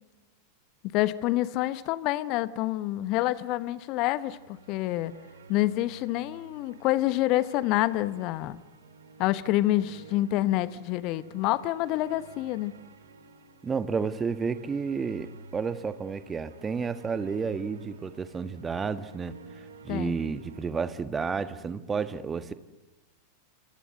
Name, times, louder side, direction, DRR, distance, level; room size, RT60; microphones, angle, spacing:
voice 1, 0.8-5.1 5.5-8.6 9.2-12.7 19.9-20.2, left 16 dB, 40° left, 1.1 m, -27 dB
sound 1, 4.2-20.7, right 3 dB, 65° right, 2.7 m, -51 dB
voice 2, 13.6-19.4 19.8-22.5, right 5 dB, 20° right, 1.5 m, -31 dB
28.0 x 27.0 x 7.7 m
figure-of-eight pair, 90°, 0 cm